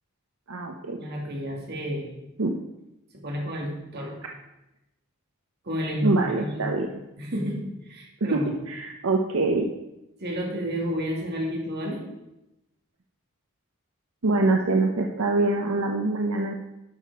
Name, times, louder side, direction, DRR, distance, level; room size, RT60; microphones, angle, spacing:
voice 1, 0.5-1.0 2.4-2.6 6.0-6.9 8.2-8.4 8.7-9.7 14.2-16.5, right 2 dB, 80° right, 2 dB, 0.8 m, -24 dB
voice 2, 1.0-2.1 3.2-4.2 5.6-6.7 7.2-8.5 10.2-12.0, equal, 50° right, 0 dB, 2.2 m, -31 dB
12.0 x 6.0 x 4.6 m, 0.93 s
head